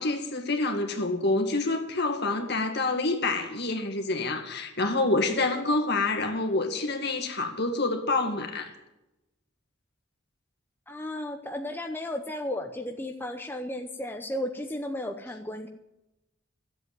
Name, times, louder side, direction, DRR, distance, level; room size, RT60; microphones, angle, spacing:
voice 1, 0.0-8.8, left 2 dB, 55° left, 2.1 m, -27 dB
voice 2, 10.9-15.7, left 1 dB, 10° left, 0.8 m, -34 dB
13.5 x 8.0 x 9.3 m
head